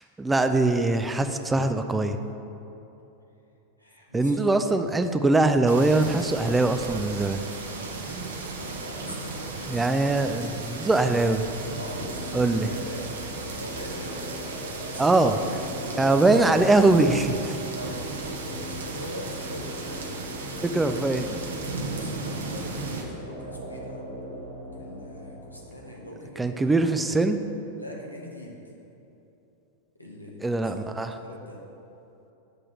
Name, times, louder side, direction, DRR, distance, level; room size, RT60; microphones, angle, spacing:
voice 1, 0.0-2.2 4.1-7.4 9.7-11.5 12.3-12.7 15.0-15.3 16.0-17.6 20.7-21.2 26.4-27.4 30.4-31.2, right 2 dB, 10° right, 8 dB, 0.3 m, -22 dB
voice 2, 3.8-4.5 7.7-8.0 8.6-9.9 11.8-16.3 17.7-18.1 18.5-24.1 24.7-26.9 27.8-28.6 30.0-31.6, left 1 dB, 85° left, -2 dB, 1.0 m, -42 dB
sound 1, 5.7-23.0, right 3 dB, 65° right, 0.8 m, -36 dB
sound 2, 11.6-26.0, equal, 85° right, 1.4 m, -39 dB
6.6 x 3.7 x 5.8 m, 3.0 s
figure-of-eight pair, 90°, 0 cm